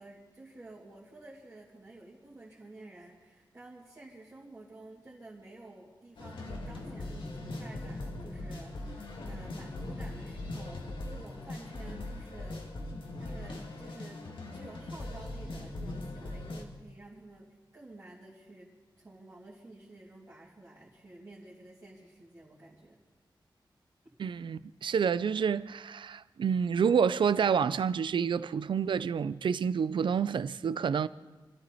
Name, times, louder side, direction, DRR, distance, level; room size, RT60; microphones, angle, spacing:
voice 1, 0.0-12.7 13.2-17.5 17.7-18.7 19.0-23.0, right 2 dB, 30° right, 2.9 m, -51 dB
sound 1, 6.2-16.6, left 2 dB, 80° left, 2.1 m, -40 dB
voice 2, 24.2-31.1, right 7 dB, 70° right, 0.4 m, -28 dB
26.5 x 13.0 x 4.2 m
wide cardioid pair, 150°, 8 cm